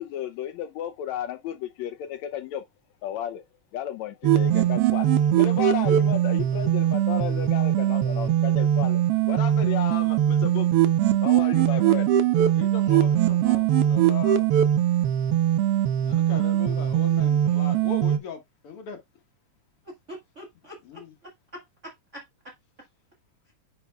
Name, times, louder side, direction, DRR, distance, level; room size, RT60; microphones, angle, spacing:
voice 1, 0.0-2.6 3.0-3.4 3.7-9.0 9.3-10.7 11.2-12.1 12.4-12.5, left 11 dB, 75° left, 1.8 m, -33 dB
sound 1, 4.2-18.2, right 11 dB, 85° right, 1.3 m, -21 dB
voice 2, 12.5-14.5 16.0-19.0 20.8-21.1, left 6 dB, 55° left, 2.0 m, -39 dB
voice 3, 20.1-21.0 21.5-22.5, equal, 40° right, 1.1 m, -44 dB
9.9 x 4.7 x 2.3 m
omnidirectional pair, 3.4 m